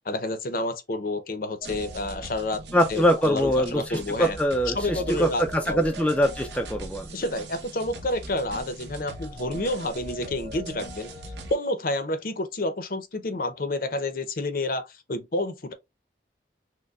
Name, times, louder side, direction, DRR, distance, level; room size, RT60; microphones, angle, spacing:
voice 1, 0.0-2.6 2.9-4.4 4.7-5.8 7.1-11.1 11.5-15.7, left 2 dB, 50° left, 0.6 m, -29 dB
sound 1, 1.6-11.5, right 2 dB, 75° right, 0.9 m, -40 dB
voice 2, 2.7-7.1, equal, 5° left, 0.4 m, -23 dB
6.4 x 2.1 x 2.3 m
head